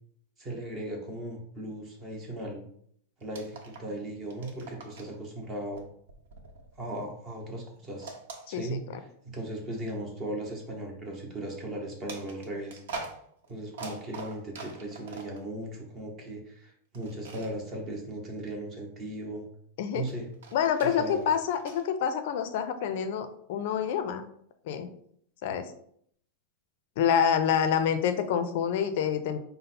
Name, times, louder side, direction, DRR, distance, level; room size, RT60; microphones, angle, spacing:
voice 1, 0.4-2.6 3.2-5.9 6.8-8.1 8.5-12.8 13.5-19.5 19.9-20.3 20.8-21.3, right 1 dB, 15° right, 0 dB, 0.8 m, -37 dB
sound 1, 3.2-4.0 4.2-5.2 5.7-7.2 8.0-9.1 9.7-9.9 12.1-15.4 16.9-17.5 20.1-21.9, right 3 dB, 70° right, 0.9 m, -44 dB
voice 2, 8.5-8.8 19.8-20.0 20.5-24.3 24.7-24.9 25.4-25.7 27.0-29.4, left 8 dB, 45° left, 9 dB, 0.5 m, -27 dB
5.3 x 2.1 x 4.1 m, 0.66 s
supercardioid pair, 175°, 0 cm